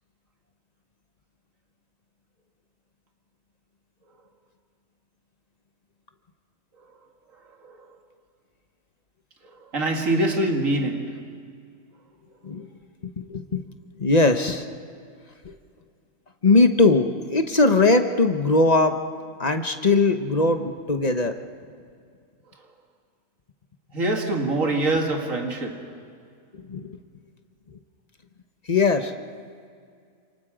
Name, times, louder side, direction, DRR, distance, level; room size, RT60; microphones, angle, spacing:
voice 1, 7.3-8.0 9.4-11.4 22.5-22.7 23.9-26.1, right 2 dB, 75° right, 2.6 m, -26 dB
voice 2, 13.0-13.6 14.0-14.7 15.4-15.5 16.4-19.0 19.4-21.4 26.5-27.0 28.7-29.1, left 3 dB, 35° left, 1.0 m, -20 dB
28.5 x 27.0 x 5.0 m
omnidirectional pair, 1.4 m